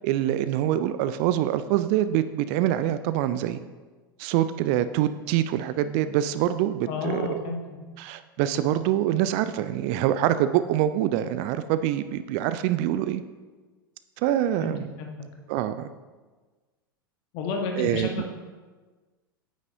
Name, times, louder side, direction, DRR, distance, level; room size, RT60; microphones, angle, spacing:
voice 1, 0.0-3.6 4.2-7.4 8.0-13.2 14.2-14.8 15.5-15.9 17.8-18.3, right 12 dB, 40° right, 13 dB, 0.3 m, -25 dB
voice 2, 6.9-7.6 14.6-15.1 17.3-18.3, left 4 dB, 45° left, 2 dB, 1.4 m, -31 dB
9.2 x 8.2 x 2.7 m, 1.3 s
figure-of-eight pair, 85°, 12 cm